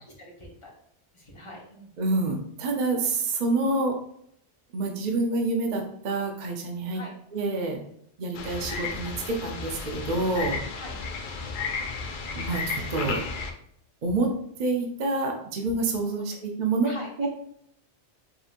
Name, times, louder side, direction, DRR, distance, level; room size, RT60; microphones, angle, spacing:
voice 1, 0.2-0.7 1.1-1.9 6.9-7.1 10.7-10.9 16.1-16.4 16.8-17.3, left 1 dB, 30° left, -3 dB, 1.0 m, -43 dB
voice 2, 2.0-4.0 4.7-7.0 7.3-7.8 8.2-10.6 12.3-13.2 14.0-14.3 14.6-16.9 17.2-17.3, right 3 dB, 50° right, 1 dB, 0.7 m, -27 dB
sound 1, 8.3-13.5, left 4 dB, 60° left, 0.6 m, -33 dB
5.0 x 2.7 x 2.5 m, 0.69 s
omnidirectional pair, 1.2 m